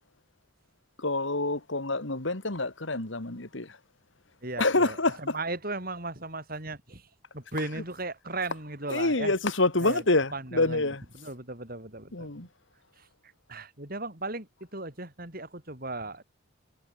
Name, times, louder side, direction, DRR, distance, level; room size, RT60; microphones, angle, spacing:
voice 1, 1.0-3.8 4.6-5.4 8.9-11.0 12.1-12.5, left 2 dB, 65° left, 2.3 m, -27 dB
voice 2, 4.4-7.0 7.3-9.3 9.8-10.0 10.3-10.9 11.1-12.3 13.5-14.5 14.7-16.2, right 2 dB, 45° right, 6.3 m, -36 dB
head